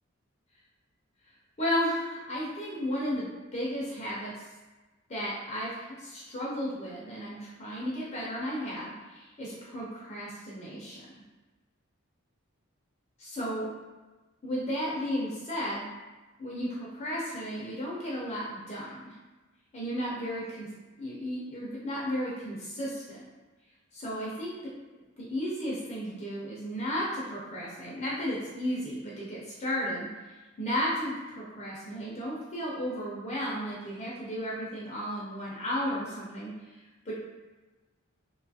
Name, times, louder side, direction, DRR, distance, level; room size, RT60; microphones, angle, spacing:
voice 1, 1.6-4.3 5.1-11.0 13.2-13.7 14.4-15.9 16.4-19.1 19.7-20.7 21.0-23.3 23.9-24.7 25.2-30.1 30.6-36.5 37.1-37.2, equal, 30° left, -6 dB, 0.5 m, -34 dB
2.7 x 2.3 x 2.6 m, 1.2 s
head